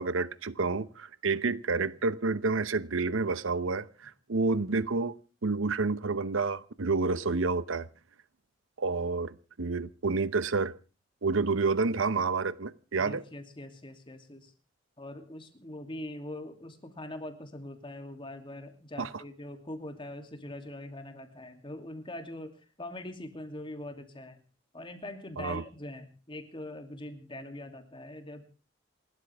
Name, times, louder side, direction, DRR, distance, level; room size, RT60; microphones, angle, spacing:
voice 1, 0.0-5.2 5.4-7.9 8.8-10.7 11.2-13.2 19.0-19.1 25.4-25.6, right 4 dB, 85° right, 0.8 m, -29 dB
voice 2, 12.9-14.5 15.0-24.4 24.7-28.4, left 1 dB, 25° left, 2.8 m, -42 dB
28.0 x 13.0 x 3.5 m
head